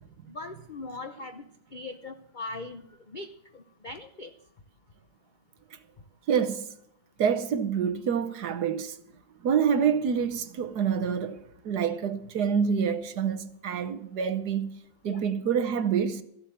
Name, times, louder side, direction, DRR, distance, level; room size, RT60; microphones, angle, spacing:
voice 1, 0.3-4.3 15.1-15.2, left 3 dB, 80° left, 0.4 m, -40 dB
voice 2, 6.3-6.7 7.2-9.0 9.4-16.2, right 7 dB, 65° right, 1.4 m, -27 dB
14.5 x 7.7 x 7.7 m
omnidirectional pair, 2.0 m